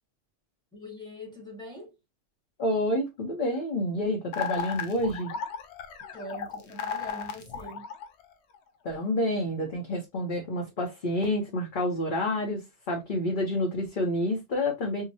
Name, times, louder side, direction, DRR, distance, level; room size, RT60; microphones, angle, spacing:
voice 1, 0.7-2.0 6.1-7.9, left 1 dB, 5° left, 1.1 m, -43 dB
voice 2, 2.6-5.3 8.8-15.1, left 1 dB, 50° left, 1.0 m, -28 dB
sound 1, 4.3-8.6, left 6 dB, 85° left, 0.9 m, -35 dB
4.7 x 2.1 x 2.7 m
omnidirectional pair, 1.1 m